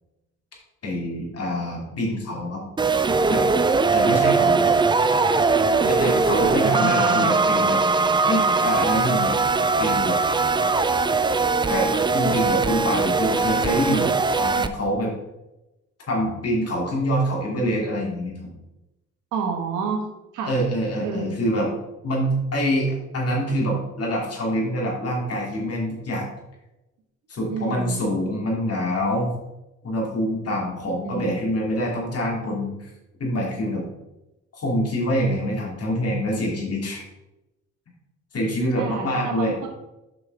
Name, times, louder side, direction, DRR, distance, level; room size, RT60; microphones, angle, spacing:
voice 1, 0.8-2.6 3.3-3.4 3.9-4.7 5.8-7.8 8.2-9.3 9.8-10.2 11.7-11.9 12.1-15.1 16.1-18.5 20.4-21.7 22.0-26.3 27.3-29.3 29.8-32.9 33.2-33.9 34.5-37.0 38.3-39.6, equal, 50° left, -2 dB, 2.7 m, -25 dB
sound 1, 2.8-14.7, right 4 dB, 15° right, 0.4 m, -20 dB
voice 2, 6.6-7.3 19.3-20.0 20.3-20.5 21.0-21.3 27.5-28.0 30.9-31.4 38.8-39.7, right 6 dB, 90° right, 2 dB, 1.5 m, -29 dB
7.7 x 5.4 x 3.4 m, 0.97 s
cardioid pair, 90°, 30 cm